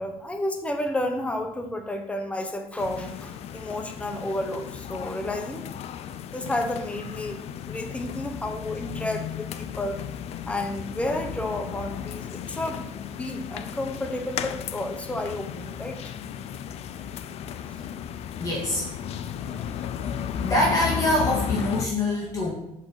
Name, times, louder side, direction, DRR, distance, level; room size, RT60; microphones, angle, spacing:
voice 1, 0.0-5.6 6.2-7.4 7.7-10.0 10.5-16.1 21.6-21.7, left 1 dB, 10° left, 5 dB, 1.2 m, -31 dB
sound 1, 2.8-21.9, left 9 dB, 60° left, 0.5 m, -34 dB
voice 2, 18.4-18.9 19.2-20.1 20.4-22.5, left 1 dB, 30° left, -4 dB, 2.1 m, -26 dB
6.6 x 5.5 x 6.7 m, 0.86 s
cardioid pair, 100°, 12 cm